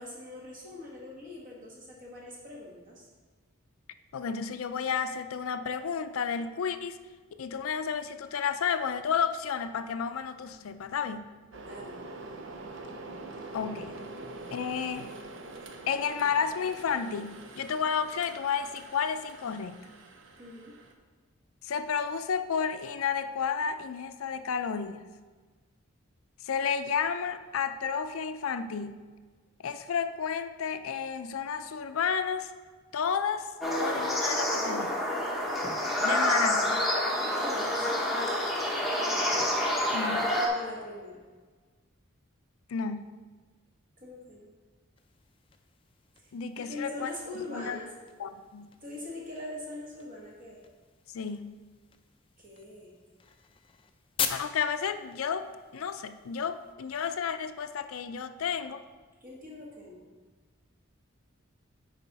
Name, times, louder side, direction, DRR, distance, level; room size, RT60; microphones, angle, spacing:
voice 1, 0.0-3.1 11.7-12.0 20.4-20.7 37.4-37.9 40.5-41.2 44.0-44.5 46.2-46.3 46.7-47.9 48.8-50.6 52.4-52.9 59.2-60.1, left 2 dB, 40° right, -3 dB, 1.7 m, -42 dB
voice 2, 4.1-7.0 7.4-11.3 13.5-14.1 14.5-15.1 15.9-19.8 21.6-25.0 26.4-29.1 29.6-32.5 32.9-33.5 33.8-35.0 36.0-36.9 39.9-40.3 42.7-43.2 46.3-47.1 47.5-47.8 48.2-48.7 51.1-51.6 54.3-55.5 55.7-58.8, left 6 dB, 85° left, 10 dB, 0.4 m, -31 dB
sound 1, 11.5-20.9, right 2 dB, 60° right, 0.7 m, -45 dB
sound 2, 33.6-40.5, left 1 dB, ahead, 0.9 m, -28 dB
sound 3, 45.0-56.7, left 7 dB, 25° left, 0.4 m, -43 dB
9.9 x 4.2 x 4.2 m, 1.4 s
head